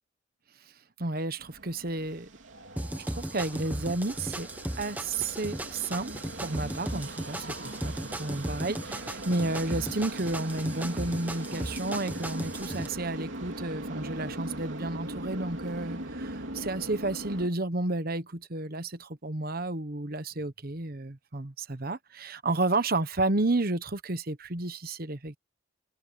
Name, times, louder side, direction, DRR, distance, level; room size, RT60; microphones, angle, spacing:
voice 1, 1.0-2.3 3.0-4.5 4.8-8.8 9.3-25.4, right 2 dB, 50° right, 1.2 m, -31 dB
sound 1, 1.4-17.5, right 1 dB, 70° right, 3.1 m, -40 dB
sound 2, 2.8-12.9, right 1 dB, 10° right, 1.1 m, -37 dB
head